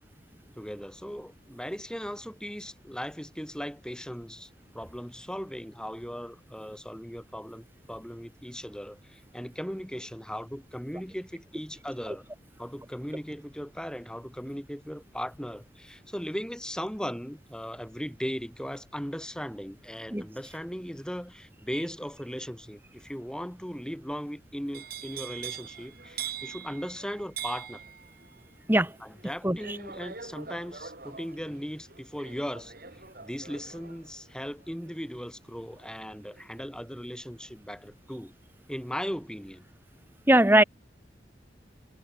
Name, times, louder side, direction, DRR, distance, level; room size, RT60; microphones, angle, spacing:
voice 1, 0.5-4.5 4.7-12.2 12.6-27.8 29.0-32.7 33.2-38.3 38.7-39.6, equal, 5° left, 4.8 m, -38 dB
sound 1, 24.7-36.7 37.0-37.5, right 8 dB, 55° right, 4.1 m, -43 dB
voice 2, 29.4-29.8 40.3-40.6, right 1 dB, 10° right, 1.9 m, -20 dB
head